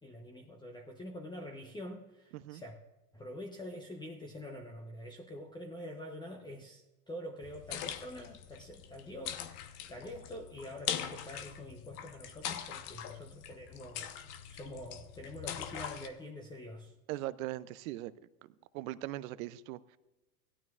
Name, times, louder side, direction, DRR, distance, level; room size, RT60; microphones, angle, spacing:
voice 1, 0.0-2.8 3.1-14.1 14.5-16.9, left 1 dB, 10° left, 3 dB, 0.8 m, -46 dB
sound 1, 7.4-16.1, left 10 dB, 50° left, 1.0 m, -42 dB
voice 2, 17.1-18.1 18.7-20.0, right 16 dB, 60° right, 16 dB, 0.6 m, -40 dB
16.5 x 12.5 x 2.4 m, 1.1 s
hypercardioid pair, 105°, 47 cm